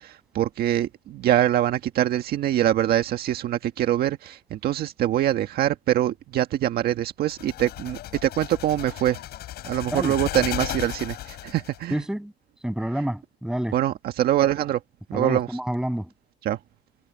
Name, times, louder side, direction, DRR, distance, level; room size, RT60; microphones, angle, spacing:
voice 1, 0.0-9.2 9.6-11.9 13.7-14.8 15.1-15.5 16.4-16.6, right 12 dB, 65° right, 1.6 m, -24 dB
sound 1, 7.3-11.9, left 14 dB, 70° left, 6.1 m, -34 dB
voice 2, 11.9-12.3 12.6-13.8 15.1-16.1, right 1 dB, 5° right, 7.3 m, -28 dB
cardioid pair, 110°, 17 cm